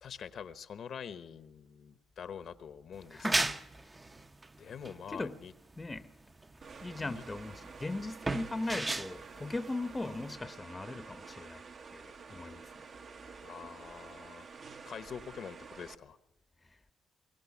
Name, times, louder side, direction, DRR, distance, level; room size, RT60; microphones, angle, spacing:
voice 1, 0.0-3.3 4.6-5.5 7.0-7.2 13.4-14.5 14.9-16.2, left 7 dB, 60° left, 0.9 m, -45 dB
sound 1, 2.9-10.4, right 2 dB, 20° right, 0.7 m, -36 dB
voice 2, 3.1-3.9 5.1-5.4 5.8-6.1 6.8-11.6 11.9-12.8 16.6-16.8, left 2 dB, 20° left, 0.8 m, -39 dB
sound 2, 6.6-15.9, right 5 dB, 50° right, 1.0 m, -50 dB
23.0 x 17.0 x 7.2 m
cardioid pair, 90°, 0 cm